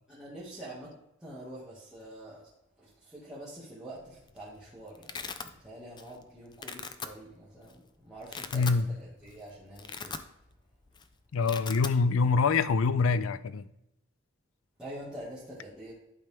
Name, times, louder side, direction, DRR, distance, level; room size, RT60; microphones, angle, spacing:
voice 1, 0.1-0.9 1.2-2.5 2.8-10.2 14.8-15.9, right 1 dB, 5° right, 1.9 m, -46 dB
Domestic sounds home sounds, 4.0-4.4 4.6-5.5 6.0-6.2 6.5-7.1 7.7-7.8 8.2-8.8 9.2-9.4 9.7-10.6 10.9-11.0 11.3-12.0, left 5 dB, 20° left, 0.4 m, -39 dB
voice 2, 8.5-8.9 11.3-13.6, left 4 dB, 85° left, 0.4 m, -25 dB
11.5 x 4.4 x 3.5 m
head